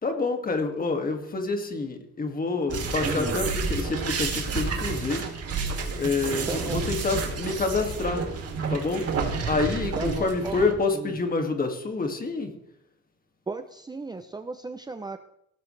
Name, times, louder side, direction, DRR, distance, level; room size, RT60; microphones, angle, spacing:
voice 1, 0.0-5.3 6.0-8.3 8.7-9.1 9.5-12.6, left 3 dB, 30° left, 4 dB, 2.2 m, -27 dB
sound 1, 2.7-10.7, right 4 dB, 50° right, 3.2 m, -30 dB
voice 2, 3.0-3.3 6.5-6.8 9.9-10.6 10.9-11.1 13.5-15.2, right 3 dB, 15° right, 8 dB, 0.6 m, -34 dB
17.5 x 14.5 x 3.3 m, 0.76 s
cardioid pair, 165°, 30 cm